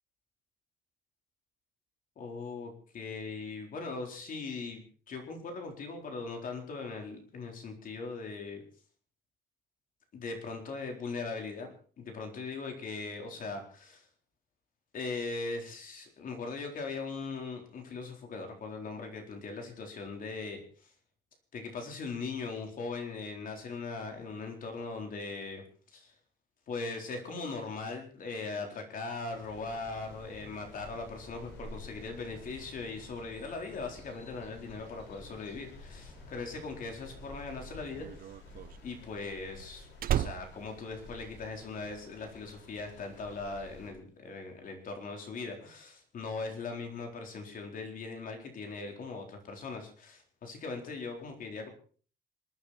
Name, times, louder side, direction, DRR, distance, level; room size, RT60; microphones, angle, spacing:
voice 1, 2.2-8.6 10.1-11.7 12.0-14.1 14.9-20.9 21.5-25.6 25.9-26.1 26.7-38.3 38.8-51.7, left 4 dB, 50° left, 3 dB, 4.2 m, -40 dB
sound 1, 29.3-43.9, left 2 dB, 85° left, 5.5 m, -53 dB
sound 2, 29.5-38.2, equal, 5° left, 5.7 m, -54 dB
Slam, 37.0-41.8 42.1-42.5, right 11 dB, 55° right, 0.6 m, -35 dB
27.5 x 9.6 x 4.4 m, 0.42 s
cardioid pair, 160°, 18 cm